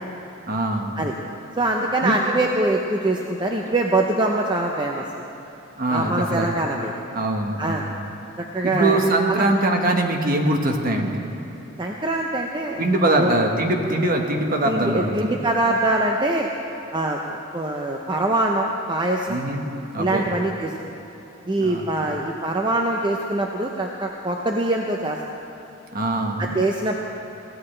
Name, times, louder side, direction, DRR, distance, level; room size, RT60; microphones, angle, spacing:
voice 1, 0.5-1.0 2.0-2.2 5.8-6.5 7.1-8.0 8.6-11.2 12.8-15.4 19.3-19.6 19.9-20.3 21.6-21.9 25.9-26.5, right 1 dB, 45° right, 2 dB, 1.4 m, -22 dB
voice 2, 1.6-5.2 5.9-6.9 7.6-7.9 8.4-9.0 9.3-9.5 11.8-12.9 13.1-13.3 14.7-16.5 16.9-19.4 20.0-20.7 21.5-25.2 26.4-27.0, right 2 dB, 25° right, 1 dB, 0.7 m, -23 dB
22.0 x 16.0 x 3.3 m, 3.0 s
head